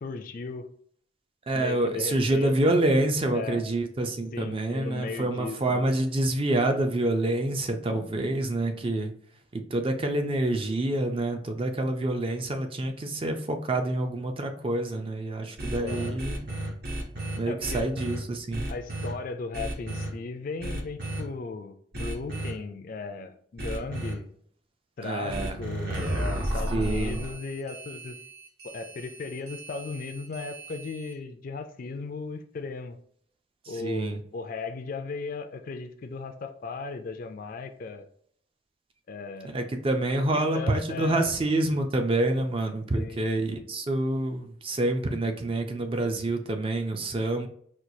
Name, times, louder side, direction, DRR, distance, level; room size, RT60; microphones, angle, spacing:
voice 1, 0.0-0.7 1.5-2.8 3.3-3.6 4.3-5.8 15.8-16.2 17.5-17.9 18.7-24.3 25.0-28.2 28.6-33.0 33.7-38.1 39.1-39.6 40.3-41.3 42.9-43.2, left 4 dB, 45° left, 8 dB, 0.3 m, -36 dB
voice 2, 1.5-9.1 9.5-16.4 17.4-18.7 25.0-25.6 26.7-27.2 33.7-34.2 39.4-47.5, right 1 dB, 30° right, 5 dB, 0.4 m, -27 dB
sound 1, 15.6-18.2 18.5-19.1 19.5-20.1 20.6-21.2 21.9-22.5 23.6-24.1 25.3-31.1, right 1 dB, 55° right, 0.8 m, -33 dB
4.4 x 2.3 x 2.7 m, 0.62 s
head